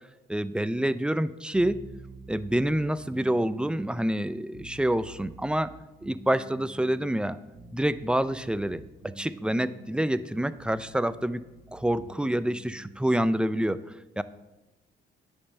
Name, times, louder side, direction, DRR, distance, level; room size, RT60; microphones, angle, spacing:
voice 1, 0.3-1.8 2.3-5.7 6.0-7.4 7.7-8.8 9.2-11.4 11.7-13.8 14.2-14.3, right 1 dB, 5° right, 14 dB, 0.4 m, -27 dB
sound 1, 1.5-13.4, right 3 dB, 65° right, 1.6 m, -49 dB
10.0 x 5.5 x 6.5 m, 1.0 s
cardioid pair, 90°, 20 cm